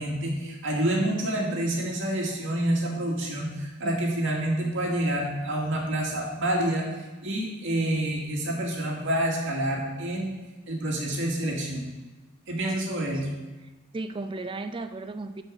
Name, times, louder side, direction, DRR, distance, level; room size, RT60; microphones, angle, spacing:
voice 1, 0.0-6.9 7.2-10.3 10.7-11.8 12.5-13.3, right 1 dB, 60° right, -1 dB, 2.5 m, -28 dB
voice 2, 12.6-13.1 13.9-15.4, right 3 dB, 25° right, 10 dB, 0.4 m, -35 dB
12.5 x 5.4 x 6.5 m, 1.2 s
head